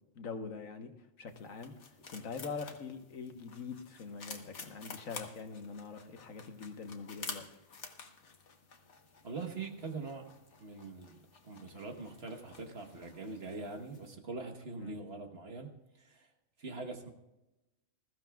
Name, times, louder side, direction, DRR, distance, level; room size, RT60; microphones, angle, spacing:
voice 1, 0.1-0.9 1.2-1.7 2.1-7.4 14.8-15.0, left 5 dB, 75° left, 6 dB, 1.5 m, -43 dB
sound 1, 1.3-14.1, left 4 dB, 60° left, 1.5 m, -51 dB
voice 2, 9.2-10.3 10.6-15.7 16.0-16.3 16.6-17.1, right 3 dB, 50° right, 4 dB, 1.4 m, -43 dB
20.5 x 14.5 x 2.3 m, 0.98 s
omnidirectional pair, 1.4 m